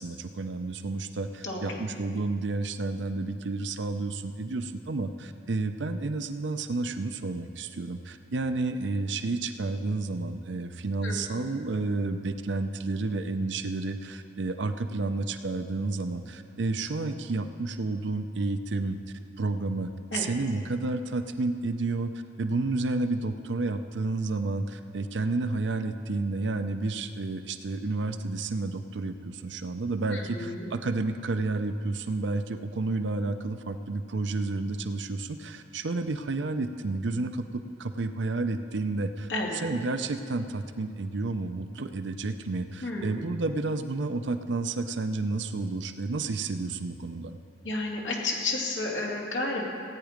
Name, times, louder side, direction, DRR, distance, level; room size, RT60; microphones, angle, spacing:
voice 1, 0.0-19.0 19.4-22.1 22.4-39.3 39.6-47.4, right 3 dB, 70° right, 9 dB, 0.6 m, -31 dB
voice 2, 1.4-1.8 11.0-11.6 20.1-20.2 30.1-30.6 39.3-39.6 42.8-43.0 47.6-49.7, left 2 dB, 70° left, -3 dB, 2.5 m, -31 dB
16.5 x 9.1 x 5.1 m, 2.4 s
head